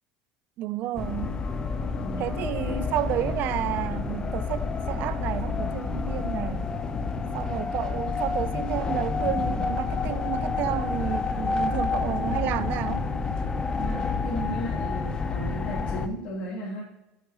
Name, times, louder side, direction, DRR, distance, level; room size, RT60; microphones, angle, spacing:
voice 1, 0.6-1.5 2.2-6.7 7.3-13.1, right 13 dB, 55° right, 0.5 m, -31 dB
sound 1, 1.0-16.1, left 4 dB, 20° left, 0.6 m, -29 dB
voice 2, 1.9-2.8 12.0-13.0 13.8-16.8, equal, 50° left, 2.4 m, -36 dB
8.2 x 4.7 x 4.7 m
supercardioid pair, 125°, 4 cm